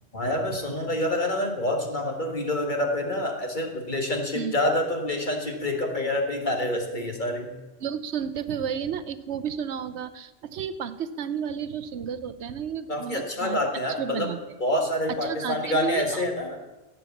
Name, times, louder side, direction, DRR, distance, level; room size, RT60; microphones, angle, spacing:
voice 1, 0.1-7.5 12.9-14.3 14.6-16.6, left 1 dB, 40° left, 2 dB, 1.9 m, -27 dB
voice 2, 7.8-13.6 14.0-14.4 15.2-16.2, right 7 dB, 60° right, 14 dB, 1.0 m, -32 dB
17.0 x 7.2 x 7.2 m, 1.1 s
omnidirectional pair, 1.3 m